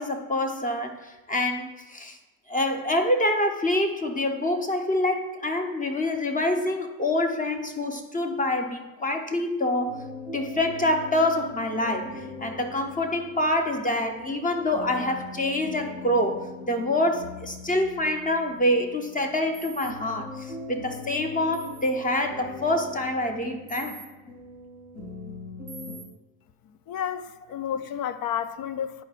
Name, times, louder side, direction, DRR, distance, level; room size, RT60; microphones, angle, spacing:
voice 1, 0.0-2.2 2.5-10.0 10.3-24.1, left 1 dB, 15° left, 0.9 m, -26 dB
sound 1, 9.9-25.9, left 3 dB, 80° left, 2.5 m, -41 dB
sound 2, 19.5-19.9 21.5-21.9 23.7-24.1 25.7-26.0, right 6 dB, 25° right, 0.8 m, -44 dB
voice 2, 26.9-29.0, left 9 dB, 45° left, 0.5 m, -31 dB
11.0 x 4.7 x 2.5 m
supercardioid pair, 80°, 49 cm